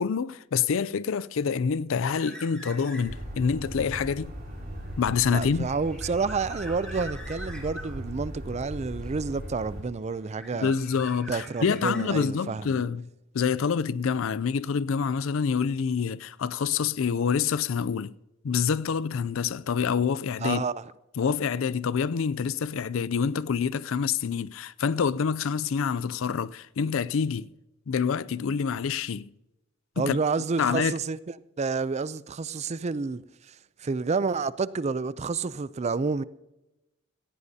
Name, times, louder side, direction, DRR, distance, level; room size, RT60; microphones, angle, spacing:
voice 1, 0.0-4.3 5.0-5.7 10.5-13.1 13.3-18.1 18.4-20.6 21.2-27.5 27.9-29.3 30.0-30.2 30.6-30.9, left 6 dB, 70° left, 0.4 m, -27 dB
sound 1, 2.0-3.3 3.7-8.0 9.0-9.8 10.1-12.5, equal, 5° left, 2.9 m, -45 dB
sound 2, 3.0-9.8, equal, 50° right, 3.8 m, -38 dB
voice 2, 5.3-10.7 11.3-12.8 20.4-20.8 30.0-31.2 31.6-33.2 33.5-33.6 33.8-36.2, right 4 dB, 35° right, 0.4 m, -29 dB
17.5 x 15.5 x 2.8 m
head